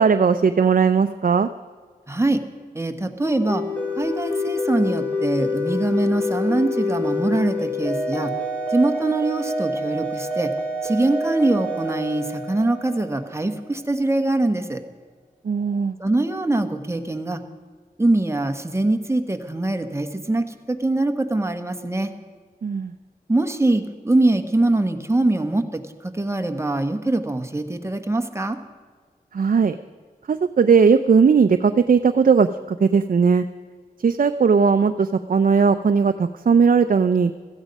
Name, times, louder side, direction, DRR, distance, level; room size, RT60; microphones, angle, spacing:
voice 1, 0.0-1.5 15.4-16.0 22.6-22.9 29.3-29.8 30.3-33.4 34.0-37.3, right 5 dB, 60° right, 8 dB, 0.5 m, -18 dB
voice 2, 2.1-2.4 2.7-3.6 4.0-8.3 8.7-10.5 10.8-14.8 16.0-17.4 18.0-22.1 23.3-28.6, right 2 dB, 15° right, 7 dB, 1.3 m, -23 dB
sound 1, 3.2-13.6, left 2 dB, 10° left, 3.2 m, -27 dB
16.0 x 14.0 x 5.3 m, 1.5 s
wide cardioid pair, 80°, 16 cm